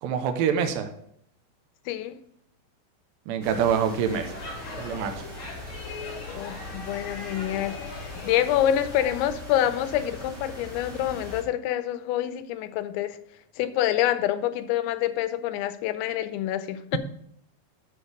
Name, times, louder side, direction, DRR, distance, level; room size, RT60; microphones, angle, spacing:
voice 1, 0.0-0.9 3.3-4.3 4.7-5.1, right 7 dB, 85° right, 2.1 m, -25 dB
voice 2, 1.9-2.2 6.3-13.2 13.6-17.0, left 11 dB, 90° left, 2.9 m, -27 dB
sound 1, 3.4-11.4, equal, 45° right, 1.0 m, -42 dB
Speech / Shout / Subway metro underground, 4.1-9.3, left 4 dB, 45° left, 2.7 m, -39 dB
7.5 x 6.3 x 5.1 m
omnidirectional pair, 5.2 m